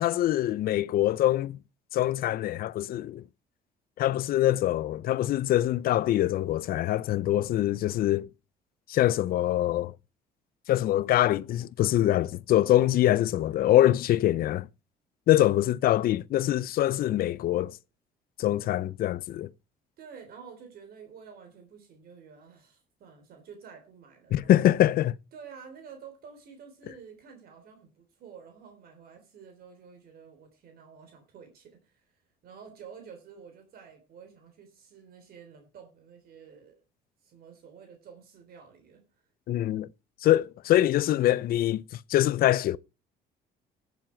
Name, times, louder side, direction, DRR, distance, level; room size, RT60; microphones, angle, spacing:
voice 1, 0.0-1.6 1.9-3.2 4.0-8.3 8.9-9.9 10.7-14.7 15.3-17.8 18.4-19.5 24.3-25.1 39.5-39.9 40.2-41.8 42.1-42.8, left 13 dB, 60° left, 0.5 m, -24 dB
voice 2, 20.0-24.7 25.3-32.0 32.4-36.8 37.2-39.0, right 6 dB, 65° right, 3.4 m, -50 dB
15.0 x 7.4 x 4.4 m
cardioid pair, 110°, 17 cm